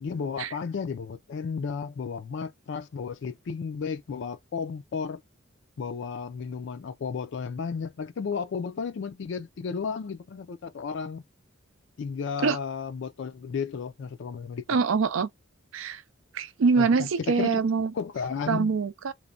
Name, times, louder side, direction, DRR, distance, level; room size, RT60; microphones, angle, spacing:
voice 1, 0.0-5.2 5.8-11.2 12.0-14.6 16.8-17.6 17.9-18.7, left 5 dB, 60° left, 0.4 m, -33 dB
voice 2, 14.7-15.3 15.7-16.0 16.3-17.9 18.5-19.1, right 5 dB, 80° right, 0.4 m, -24 dB
3.1 x 2.1 x 2.4 m
head